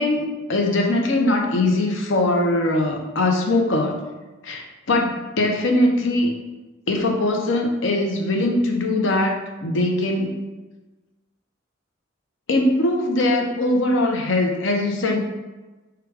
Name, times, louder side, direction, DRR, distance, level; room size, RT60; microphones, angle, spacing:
voice 1, 0.0-4.0 4.4-6.3 6.9-10.3 12.5-15.2, left 2 dB, 75° left, 2 dB, 0.7 m, -21 dB
4.8 x 2.3 x 4.7 m, 1.2 s
head